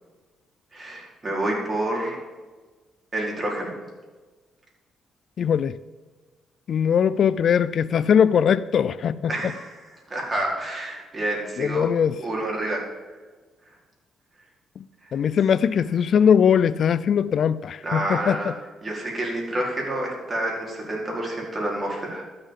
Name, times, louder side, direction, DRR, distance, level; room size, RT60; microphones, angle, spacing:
voice 1, 0.7-2.2 3.1-3.8 9.2-11.9 12.2-12.8 17.8-18.5 18.8-22.2, right 1 dB, 25° right, -2 dB, 4.7 m, -28 dB
voice 2, 5.4-5.7 6.7-9.3 11.6-12.1 15.1-18.4, left 8 dB, 60° left, 17 dB, 0.4 m, -20 dB
12.5 x 6.8 x 7.5 m, 1.3 s
cardioid pair, 90°, 0 cm